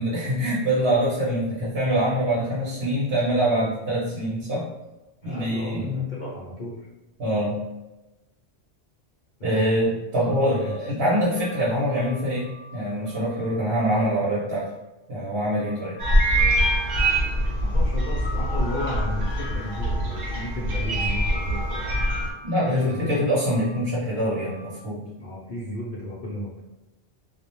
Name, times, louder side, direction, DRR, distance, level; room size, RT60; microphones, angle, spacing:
voice 1, 0.0-4.7 5.2-6.1 7.2-7.6 9.4-14.7 15.1-16.0 22.4-25.0, equal, 60° right, -7 dB, 0.9 m, -24 dB
voice 2, 5.2-6.8 9.4-9.8 10.3-10.8 17.6-22.1 22.6-23.1 25.2-26.5, left 1 dB, 50° left, -6 dB, 0.6 m, -34 dB
sound 1, 10.3-10.8 11.4-12.7 13.1-13.5 15.6-16.1 16.7-18.4 18.8-19.3 21.3-21.7 22.2-23.8 24.2-24.7, equal, 75° left, 0.9 m, -48 dB
sound 2, 16.0-22.3, right 1 dB, 90° right, 1.1 m, -23 dB
2.3 x 2.1 x 2.9 m, 1.0 s
omnidirectional pair, 1.2 m